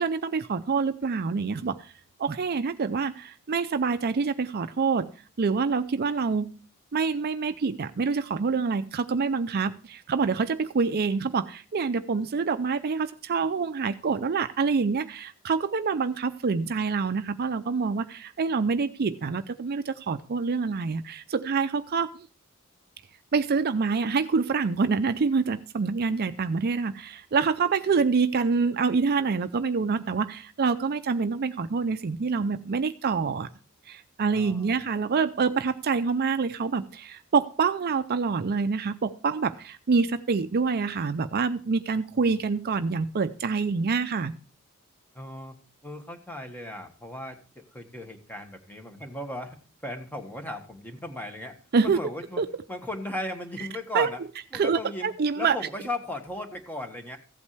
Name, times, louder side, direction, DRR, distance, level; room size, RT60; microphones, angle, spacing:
voice 1, 0.0-1.9 2.2-5.1 5.4-6.6 6.9-22.3 23.3-33.5 33.9-44.3 51.7-52.0 52.4-52.5 53.9-54.1 54.5-55.6, right 5 dB, 45° right, 11 dB, 0.5 m, -26 dB
voice 2, 34.3-34.7 42.1-42.2 45.1-45.6 45.8-52.4 52.7-54.2 54.5-55.1 55.3-57.2, left 1 dB, 10° left, 5 dB, 1.4 m, -37 dB
15.0 x 8.4 x 3.3 m, 0.38 s
head